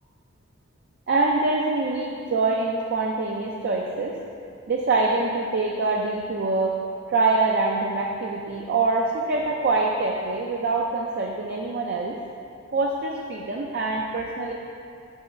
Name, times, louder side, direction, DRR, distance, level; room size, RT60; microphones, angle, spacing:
voice 1, 1.1-4.1 4.7-6.7 7.1-12.1 12.7-14.5, right 3 dB, 50° right, -1 dB, 0.4 m, -24 dB
5.5 x 4.0 x 5.6 m, 2.5 s
head